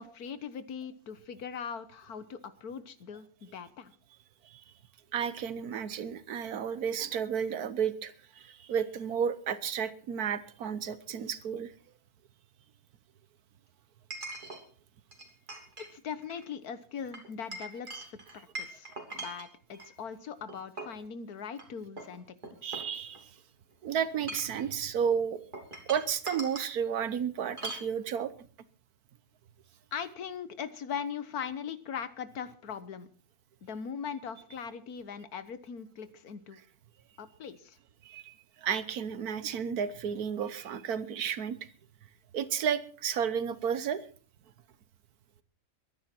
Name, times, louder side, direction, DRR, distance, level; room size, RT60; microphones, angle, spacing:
voice 1, 0.0-3.9 15.8-22.2 22.6-22.8 29.9-33.1 33.6-36.6 37.2-37.8, left 7 dB, 90° left, 13 dB, 1.7 m, -40 dB
voice 2, 5.1-11.7 22.6-23.3 23.8-25.4 25.9-28.3 38.0-41.6 42.3-44.0, right 7 dB, 85° right, 14 dB, 1.5 m, -32 dB
Chink clink, 10.6-10.7 14.1-14.6 15.1-15.9 16.2-16.5 17.1-19.9 20.5-21.0 21.5-21.6 22.0-23.4 24.1-24.6 25.5-26.7 27.6-27.9, right 2 dB, 35° right, 3.1 m, -42 dB
22.5 x 10.5 x 4.5 m, 0.41 s
omnidirectional pair, 1.6 m